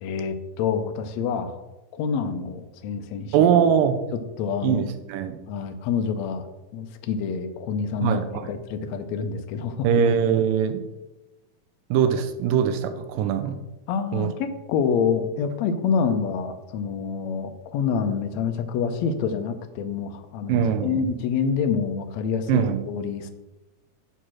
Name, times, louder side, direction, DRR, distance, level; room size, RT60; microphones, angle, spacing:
voice 1, 0.0-1.6 1.9-3.5 4.4-4.9 5.5-6.5 6.7-9.9 13.9-23.3, left 6 dB, 80° left, 7 dB, 1.6 m, -27 dB
voice 2, 3.3-4.0 4.6-5.4 8.0-8.5 9.8-10.8 11.9-13.6 14.1-14.3 20.5-21.0 22.5-22.8, right 8 dB, 85° right, 8 dB, 2.4 m, -22 dB
8.0 x 4.3 x 6.1 m, 1.0 s
omnidirectional pair, 3.9 m